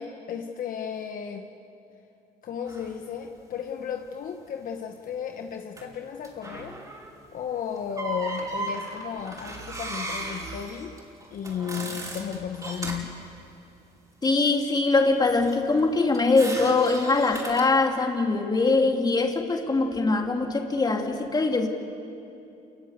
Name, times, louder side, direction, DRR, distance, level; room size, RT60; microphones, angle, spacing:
voice 1, 0.0-1.5 2.4-6.8 7.3-11.0 11.3-13.2, left 7 dB, 55° left, 4 dB, 1.3 m, -34 dB
sound 1, 2.7-2.9 5.8-5.9 6.2-7.2 7.8-13.1 15.2-17.7, right 1 dB, 20° right, 5.3 m, -36 dB
voice 2, 14.2-21.7, left 3 dB, 25° left, 3 dB, 2.7 m, -22 dB
28.0 x 20.5 x 8.2 m, 2.8 s
cardioid pair, 110°, 17 cm